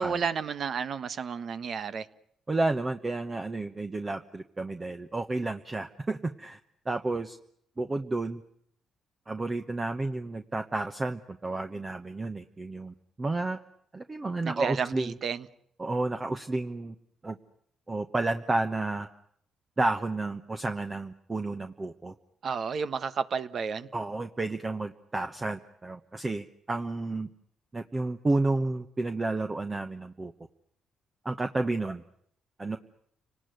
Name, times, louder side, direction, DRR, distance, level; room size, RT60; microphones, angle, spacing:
voice 1, 0.0-2.1 14.4-15.5 22.4-23.9, right 6 dB, 55° right, 1.3 m, -31 dB
voice 2, 2.5-6.6 6.8-7.4 7.8-8.4 9.3-13.6 13.9-15.2 15.8-16.9 17.2-17.4 17.9-19.1 19.8-22.1 23.9-27.3 27.7-30.3 31.2-32.0 32.6-32.8, right 2 dB, 25° right, 1.1 m, -31 dB
29.5 x 19.0 x 9.4 m
cardioid pair, 90°, 0 cm